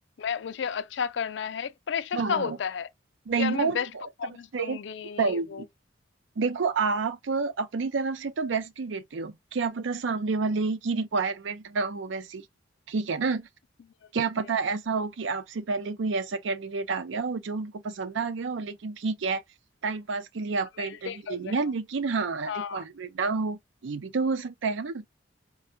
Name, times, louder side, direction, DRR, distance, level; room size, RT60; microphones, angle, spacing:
voice 1, 0.2-2.9 3.4-3.9 4.2-5.6 20.8-21.5 22.5-22.8, left 7 dB, 65° left, 0.4 m, -32 dB
voice 2, 2.1-2.6 3.3-4.1 4.5-4.8 5.2-5.7 6.4-12.4 12.9-13.5 14.1-19.4 19.8-25.0, right 4 dB, 70° right, 0.5 m, -29 dB
4.3 x 2.3 x 2.6 m
head